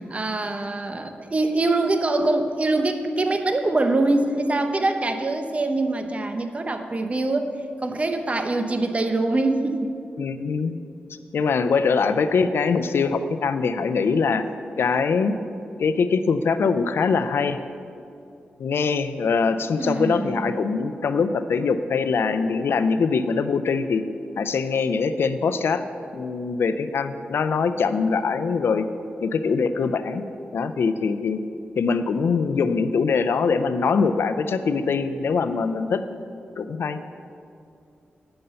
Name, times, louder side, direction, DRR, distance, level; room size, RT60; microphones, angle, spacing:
voice 1, 0.1-7.5 7.8-9.9 19.8-20.6, right 2 dB, 35° right, 7 dB, 0.8 m, -24 dB
voice 2, 10.2-10.8 11.3-14.5 14.8-15.3 15.8-17.6 18.6-24.0 24.4-25.8 26.1-28.9 29.2-30.2 30.5-31.4 31.8-36.0 36.6-37.0, left 5 dB, 70° left, 10 dB, 0.5 m, -23 dB
8.8 x 5.4 x 6.8 m, 2.5 s
cardioid pair, 65°, 4 cm